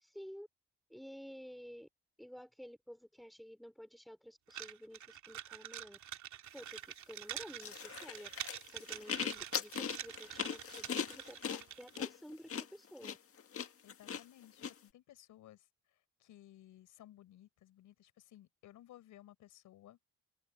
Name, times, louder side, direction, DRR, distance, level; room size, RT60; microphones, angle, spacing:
voice 1, 0.1-0.5 0.9-1.9 2.2-6.0 6.5-6.8 7.1-8.3 8.7-13.2, equal, ahead, 3.6 m, -52 dB
sound 1, 4.5-12.0, right 11 dB, 70° right, 2.8 m, -47 dB
sound 2, 7.6-14.7, left 7 dB, 50° left, 1.8 m, -40 dB
voice 2, 13.8-20.0, left 13 dB, 85° left, 4.9 m, -59 dB
cardioid pair, 90°, 30 cm